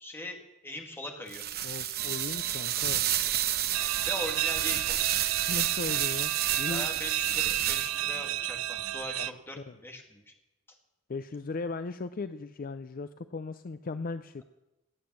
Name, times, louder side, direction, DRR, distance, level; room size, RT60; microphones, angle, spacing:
voice 1, 0.0-1.4 4.1-5.0 6.6-10.2, left 1 dB, 10° left, 2 dB, 2.1 m, -40 dB
sound 1, 1.3-8.2, right 11 dB, 50° right, 0.9 m, -31 dB
voice 2, 1.6-3.0 5.5-6.9 9.2-9.7 11.1-14.4, left 3 dB, 40° left, 11 dB, 0.5 m, -37 dB
sound 2, 2.0-9.3, right 13 dB, 85° right, 0.4 m, -33 dB
18.5 x 8.9 x 7.5 m, 0.97 s
head